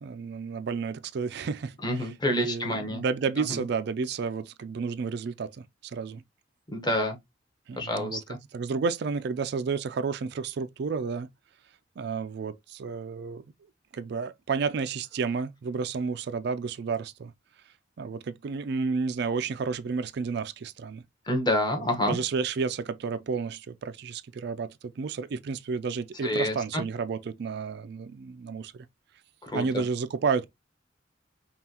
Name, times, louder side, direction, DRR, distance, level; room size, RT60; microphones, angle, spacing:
voice 1, 0.0-5.6 5.9-6.2 7.7-8.2 8.5-11.3 12.0-13.4 13.9-17.3 18.0-21.0 21.8-28.9 29.5-30.5, right 5 dB, 65° right, 0.4 m, -31 dB
voice 2, 1.8-3.0 3.5-3.6 6.7-7.2 7.8-8.2 21.3-22.2 26.2-26.8 29.4-29.8, left 1 dB, 25° left, 1.1 m, -28 dB
5.5 x 2.4 x 2.9 m
head